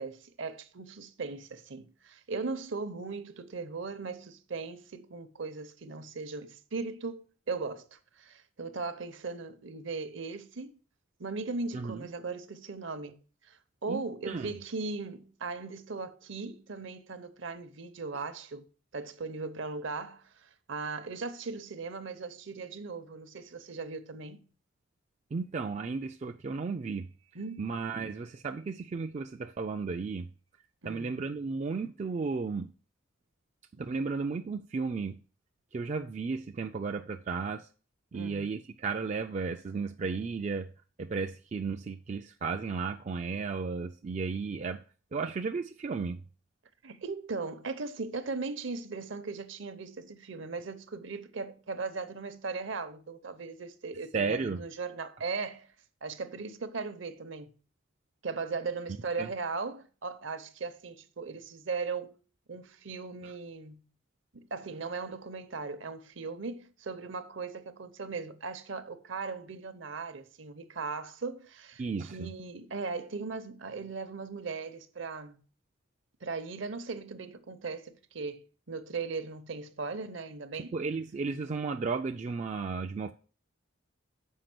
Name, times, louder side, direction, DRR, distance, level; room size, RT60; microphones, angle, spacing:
voice 1, 0.0-10.8 11.2-13.2 13.5-18.7 18.9-24.4 27.3-27.7 30.8-31.1 38.1-38.5 46.8-55.7 56.0-57.5 58.2-62.2 62.5-63.8 64.3-75.4 76.2-80.7, right 4 dB, 60° right, 0.7 m, -38 dB
voice 2, 11.7-12.1 13.9-14.5 25.3-27.1 27.6-30.3 30.8-32.7 33.8-35.2 35.7-37.7 38.1-40.7 41.0-44.8 45.1-46.2 54.1-54.6 59.2-59.3 63.2-63.3 71.8-72.3 80.5-83.1, right 4 dB, 35° right, 0.3 m, -34 dB
6.5 x 4.9 x 5.9 m
head